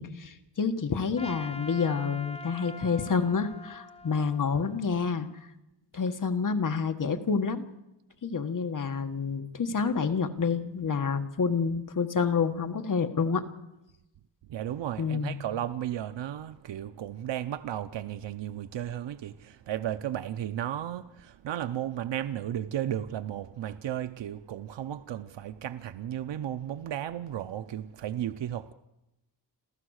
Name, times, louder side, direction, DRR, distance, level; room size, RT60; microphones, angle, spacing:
voice 1, 0.0-5.3 5.9-7.6 8.2-13.4 15.0-15.4, left 5 dB, 45° left, 1.5 m, -28 dB
Trumpet, 1.2-5.5, left 2 dB, 15° left, 0.8 m, -44 dB
voice 2, 14.5-28.7, right 11 dB, 75° right, 0.8 m, -34 dB
27.5 x 15.0 x 6.5 m
wide cardioid pair, 120°, 43 cm